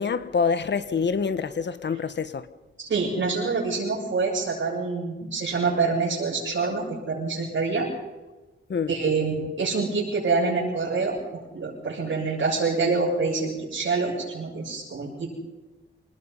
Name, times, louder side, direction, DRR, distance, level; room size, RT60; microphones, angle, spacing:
voice 1, 0.0-2.5 8.7-8.9, left 5 dB, 60° left, 1.4 m, -26 dB
voice 2, 2.8-7.9 8.9-11.2 11.5-15.4, right 4 dB, 70° right, 7.5 m, -26 dB
28.0 x 20.0 x 5.7 m
wide cardioid pair, 135°, 20 cm